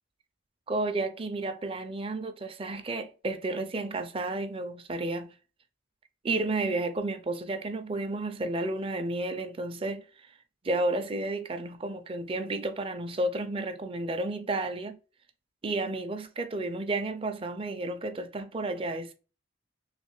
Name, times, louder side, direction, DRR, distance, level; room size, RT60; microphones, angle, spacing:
voice 1, 0.7-5.3 6.2-10.3 10.6-15.0 15.6-19.1, right 2 dB, 25° right, 0.4 m, -32 dB
3.2 x 3.2 x 3.1 m
head